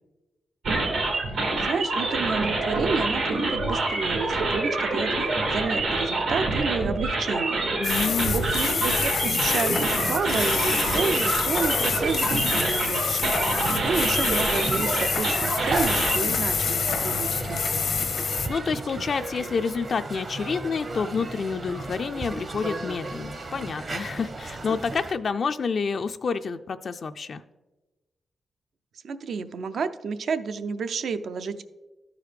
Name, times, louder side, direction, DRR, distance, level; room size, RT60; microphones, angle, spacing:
sound 1, 0.6-16.2, right 2 dB, 90° right, 2.4 m, -26 dB
voice 1, 1.3-7.7 8.0-17.6 29.0-31.6, right 5 dB, 75° right, 10 dB, 0.4 m, -30 dB
sound 2, 7.8-18.5, left 5 dB, 75° left, 0.7 m, -27 dB
voice 2, 7.8-8.5 13.4-13.8 18.5-27.4, left 5 dB, 60° left, 9 dB, 0.3 m, -29 dB
sound 3, 9.8-25.1, right 2 dB, 50° right, 0.9 m, -35 dB
13.0 x 4.8 x 3.3 m, 1.1 s
cardioid pair, 75°, 0 cm